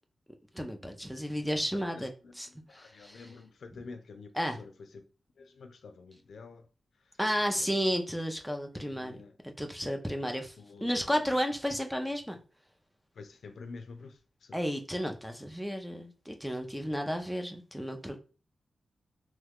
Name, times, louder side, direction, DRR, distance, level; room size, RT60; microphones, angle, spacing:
voice 1, 0.5-2.1 2.4-3.2 4.4-4.6 7.2-9.2 9.4-10.5 10.8-12.4 14.5-18.2, equal, ahead, 0.5 m, -32 dB
voice 2, 1.7-4.3 4.6-5.0 5.4-6.7 7.0-7.2 7.6-7.8 8.7-9.4 10.2-11.4 13.1-14.6, left 4 dB, 80° left, 0.4 m, -49 dB
3.1 x 2.3 x 3.5 m
cardioid pair, 80°, 0 cm